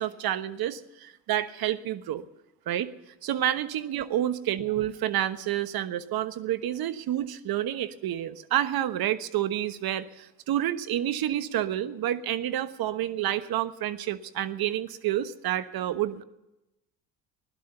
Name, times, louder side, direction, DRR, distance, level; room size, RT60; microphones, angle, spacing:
voice 1, 0.0-2.2 2.7-2.9 3.2-16.2, right 12 dB, 55° right, 12 dB, 1.3 m, -29 dB
17.0 x 12.0 x 6.8 m, 0.94 s
hypercardioid pair, 75°, 44 cm